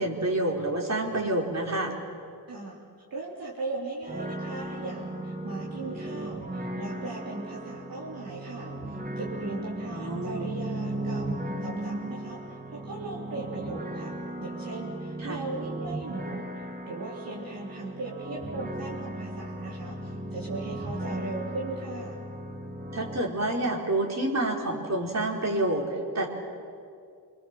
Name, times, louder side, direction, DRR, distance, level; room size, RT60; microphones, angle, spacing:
voice 1, 0.0-1.9 9.9-10.5 15.2-15.4 22.9-26.3, right 1 dB, 45° right, 0 dB, 4.6 m, -28 dB
voice 2, 3.1-22.2, right 3 dB, 65° right, -5 dB, 3.8 m, -38 dB
sound 1, 4.0-23.2, right 1 dB, 25° right, 2.6 m, -36 dB
28.5 x 23.0 x 7.7 m, 2.4 s
wide cardioid pair, 105°, 38 cm